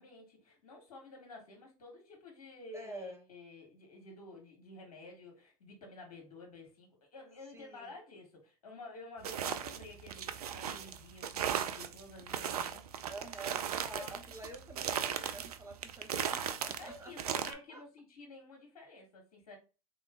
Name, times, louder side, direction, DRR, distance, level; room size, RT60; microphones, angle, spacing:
voice 1, 0.0-12.9 13.9-14.1 16.8-19.6, left 2 dB, 80° left, 1.3 m, -51 dB
voice 2, 2.7-3.2 7.5-7.9 13.1-17.1 17.4-17.8, right 2 dB, 15° right, 1.1 m, -48 dB
sound 1, 9.2-17.5, right 8 dB, 85° right, 0.4 m, -37 dB
3.5 x 3.0 x 3.4 m
hypercardioid pair, 85°, 19 cm